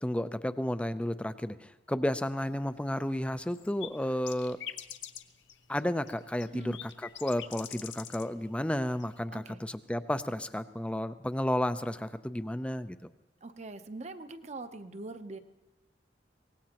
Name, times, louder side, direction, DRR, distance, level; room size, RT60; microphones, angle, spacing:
voice 1, 0.0-4.6 5.7-6.9 7.2-13.0, left 1 dB, 5° left, 12 dB, 0.4 m, -32 dB
sound 1, 2.4-8.3 8.6-9.2, left 10 dB, 85° left, 0.7 m, -45 dB
voice 2, 13.4-15.4, right 3 dB, 40° right, 9 dB, 0.7 m, -42 dB
23.5 x 18.5 x 3.0 m, 1.1 s
head